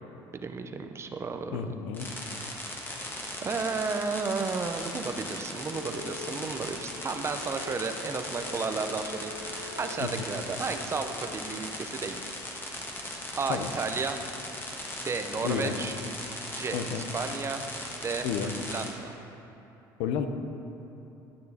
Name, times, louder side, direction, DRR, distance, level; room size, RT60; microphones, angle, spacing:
voice 1, 0.3-1.7 3.4-12.2 13.4-14.2 15.0-15.9 16.5-17.6 18.0-19.2, right 4 dB, 30° right, 7 dB, 0.6 m, -33 dB
voice 2, 1.5-2.1 10.0-10.1 13.5-13.7 15.4-15.7 16.7-17.0 18.2-18.5 20.0-20.3, left 7 dB, 85° left, 7 dB, 0.7 m, -31 dB
sound 1, 1.9-18.9, left 1 dB, 25° left, 1.4 m, -38 dB
sound 2, 5.5-11.3, left 3 dB, ahead, 2.0 m, -46 dB
11.5 x 6.6 x 4.2 m, 3.0 s
supercardioid pair, 95°, 9 cm